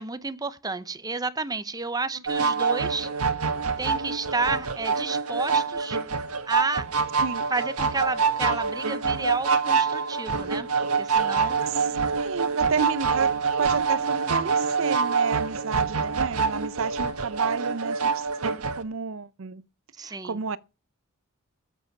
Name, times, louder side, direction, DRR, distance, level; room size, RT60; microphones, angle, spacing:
voice 1, 0.0-3.1 3.8-6.0 6.4-6.9 7.5-10.7 11.0-11.6 20.0-20.4, right 3 dB, 15° right, 0.8 m, -31 dB
sound 1, 2.3-18.8, right 5 dB, 85° right, 1.5 m, -26 dB
voice 2, 11.7-19.6 20.0-20.6, right 5 dB, 65° right, 0.6 m, -31 dB
14.5 x 8.2 x 5.9 m
head